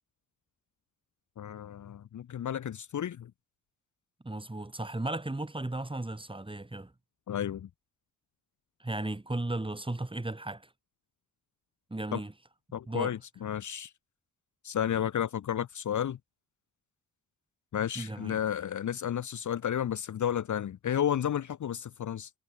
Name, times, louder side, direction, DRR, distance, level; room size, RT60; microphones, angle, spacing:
voice 1, 1.4-3.3 7.3-7.7 12.1-12.2 12.7-13.9 14.6-16.2 17.7-22.3, left 9 dB, 55° left, 0.7 m, -32 dB
voice 2, 4.2-6.9 8.8-10.7 11.9-12.3 12.9-13.1 18.0-18.4, right 2 dB, 15° right, 3.9 m, -35 dB
cardioid pair, 95°, 36 cm